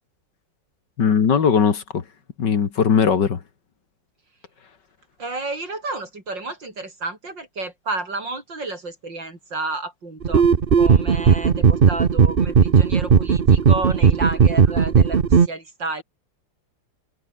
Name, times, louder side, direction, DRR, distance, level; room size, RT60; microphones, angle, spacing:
voice 1, 1.0-2.0 2.4-3.4, left 6 dB, 65° left, 2.5 m, -19 dB
voice 2, 5.2-10.5 10.8-16.0, right 3 dB, 70° right, 6.4 m, -31 dB
sound 1, 10.2-15.5, right 6 dB, 40° right, 1.0 m, -16 dB
omnidirectional pair, 2.1 m